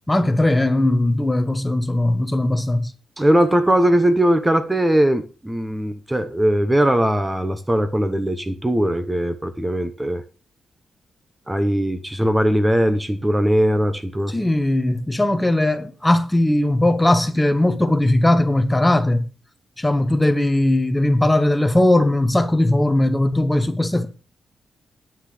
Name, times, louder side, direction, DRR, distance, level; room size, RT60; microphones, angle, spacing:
voice 1, 0.1-2.9 14.3-19.3 19.8-24.1, left 1 dB, 10° left, 1.2 m, -19 dB
voice 2, 3.2-10.2 11.5-14.3, right 1 dB, 10° right, 1.1 m, -19 dB
10.0 x 6.4 x 6.6 m
cardioid pair, 105°, 0 cm